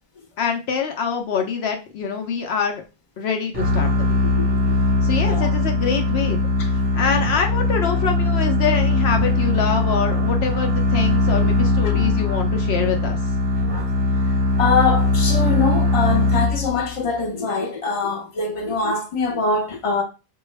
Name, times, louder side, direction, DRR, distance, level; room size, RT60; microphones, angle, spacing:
voice 1, 0.4-2.8 3.2-4.2 5.0-6.4 6.9-13.2, left 6 dB, 75° left, 0.9 m, -25 dB
sound 1, 3.5-16.9, left 2 dB, 35° right, 0.7 m, -20 dB
voice 2, 4.2-4.8 5.2-5.5 11.4-11.5 11.8-12.0 13.8-13.9 14.2-20.0, left 4 dB, 35° left, 0.8 m, -24 dB
4.5 x 2.2 x 3.2 m
omnidirectional pair, 1.1 m